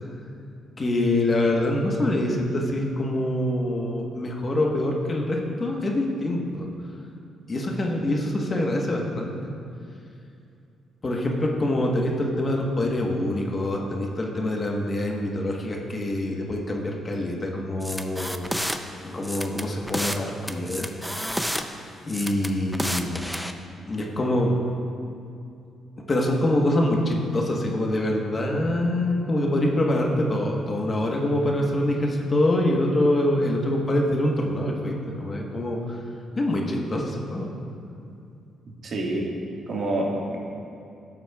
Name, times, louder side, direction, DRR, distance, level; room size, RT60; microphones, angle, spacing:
voice 1, 0.8-6.7 7.5-9.3 11.0-18.5 19.0-21.1 22.1-23.2 23.9-24.6 26.1-36.0 36.4-37.5, left 1 dB, 30° left, 0 dB, 1.2 m, -25 dB
sound 1, 17.8-18.8 19.2-20.2 20.5-21.6 22.1-23.5, equal, ahead, 0.5 m, -30 dB
voice 2, 38.8-39.2 39.7-40.4, right 1 dB, 60° right, -2 dB, 1.6 m, -27 dB
13.0 x 7.4 x 2.3 m, 2.6 s
cardioid pair, 90°, 0 cm